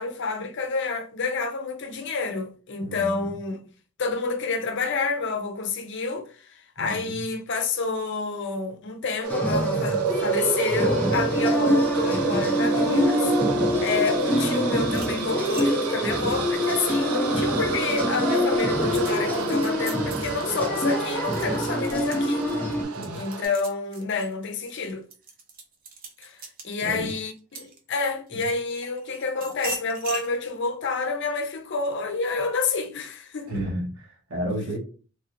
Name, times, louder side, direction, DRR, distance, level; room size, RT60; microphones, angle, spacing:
voice 1, 0.0-3.6 4.0-13.3 13.8-22.5 23.1-25.1 26.2-33.5, left 4 dB, 55° left, 0.6 m, -29 dB
voice 2, 2.8-3.3 6.8-7.2 22.9-23.2 26.8-27.1 28.3-28.4 33.5-34.8, right 1 dB, 70° right, 1.1 m, -32 dB
sound 1, 9.2-23.4, right 6 dB, 85° right, 0.5 m, -29 dB
sound 2, 9.3-22.8, left 1 dB, 5° left, 0.5 m, -25 dB
sound 3, 14.9-17.7 18.1-28.3 28.8-30.3, right 2 dB, 40° right, 0.6 m, -41 dB
3.3 x 2.4 x 2.8 m
head